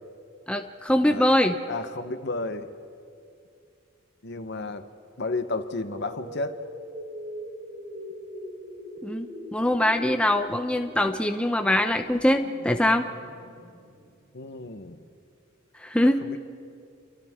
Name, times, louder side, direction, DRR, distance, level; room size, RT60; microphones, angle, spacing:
voice 1, 0.5-1.6 9.0-13.1 15.8-16.2, left 1 dB, 5° left, 5 dB, 0.7 m, -23 dB
voice 2, 1.7-2.7 4.2-4.8 5.2-6.6 14.3-15.0 16.2-16.4, left 3 dB, 55° left, 9 dB, 1.1 m, -32 dB
sound 1, 5.6-14.5, equal, 50° right, 5.8 m, -42 dB
29.5 x 24.0 x 3.7 m, 2.4 s
head